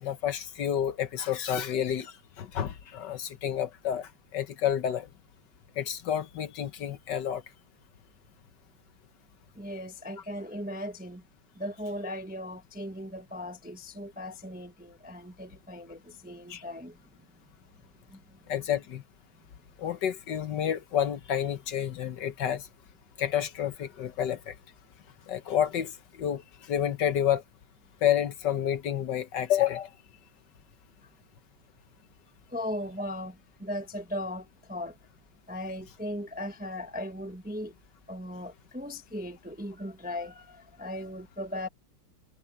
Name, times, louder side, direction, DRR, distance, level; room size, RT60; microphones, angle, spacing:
voice 1, 0.0-2.1 2.4-5.1 5.8-7.4 16.5-16.6 18.5-19.0 19.8-22.6 23.2-24.5 25.3-25.9 26.2-26.4 26.7-27.4 28.0-29.9, left 10 dB, 60° left, 1.5 m, -29 dB
voice 2, 9.6-11.2 11.6-17.0 18.1-18.2 32.5-35.0 35.5-37.7 38.1-41.7, left 1 dB, 5° right, 0.6 m, -38 dB
omnidirectional pair, 2.3 m